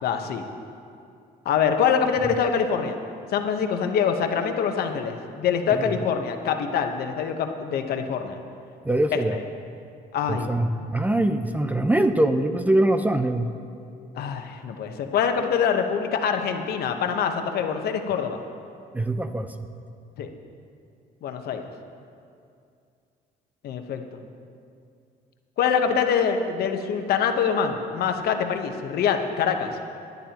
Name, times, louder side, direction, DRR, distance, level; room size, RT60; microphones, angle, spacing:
voice 1, 0.0-0.4 1.4-3.0 3.3-8.4 9.1-9.4 10.1-10.5 14.1-18.4 20.2-20.3 21.2-21.6 23.6-24.2 25.6-29.7, left 7 dB, 65° left, 5 dB, 1.0 m, -25 dB
voice 2, 8.8-9.4 10.3-13.5 18.9-19.7, right 1 dB, 10° right, 8 dB, 0.5 m, -23 dB
17.5 x 11.0 x 2.9 m, 2.4 s
cardioid pair, 110°, 17 cm